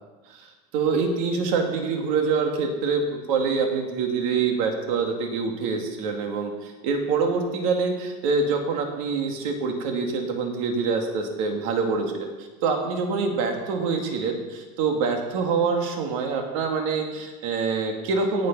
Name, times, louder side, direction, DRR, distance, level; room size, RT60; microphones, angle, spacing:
voice 1, 0.7-12.3 12.6-18.5, right 4 dB, 70° right, 3 dB, 2.0 m, -25 dB
17.5 x 6.5 x 6.0 m, 1.2 s
cardioid pair, 165°, 18 cm